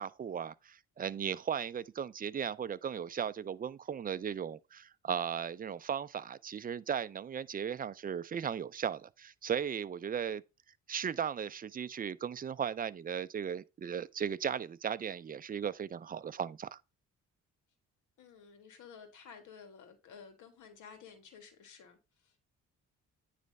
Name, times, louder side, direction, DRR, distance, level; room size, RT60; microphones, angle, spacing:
voice 1, 0.0-10.4 10.9-16.8, right 8 dB, 30° right, 0.4 m, -36 dB
voice 2, 18.2-22.4, left 6 dB, 75° left, 1.7 m, -53 dB
9.3 x 3.3 x 5.2 m
cardioid pair, 90°, 30 cm